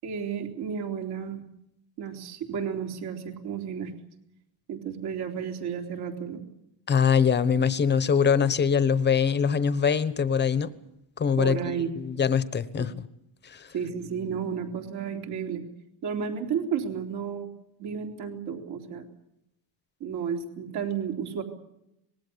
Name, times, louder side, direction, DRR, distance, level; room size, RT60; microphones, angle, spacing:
voice 1, 0.0-1.4 2.0-3.9 4.7-6.4 11.4-11.9 12.7-12.9 13.7-15.6 16.0-17.5 17.8-19.1 20.0-21.4, right 7 dB, 55° right, 3.9 m, -32 dB
voice 2, 6.9-10.7 11.2-12.9 13.4-13.7, left 7 dB, 20° left, 1.1 m, -23 dB
25.5 x 20.5 x 7.0 m
cardioid pair, 165°, 46 cm